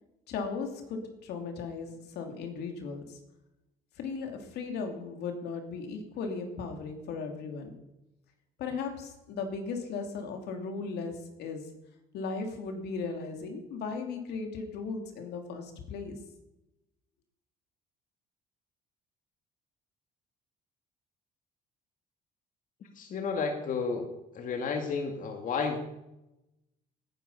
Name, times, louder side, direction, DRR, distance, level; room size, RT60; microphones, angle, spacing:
voice 1, 0.3-3.2 4.0-7.7 8.6-11.7 12.1-16.2, left 4 dB, 75° left, 5 dB, 2.8 m, -37 dB
voice 2, 23.0-24.1 24.3-25.8, left 5 dB, 50° left, 4 dB, 2.0 m, -32 dB
19.0 x 9.9 x 5.6 m, 0.93 s
cardioid pair, 110°, 17 cm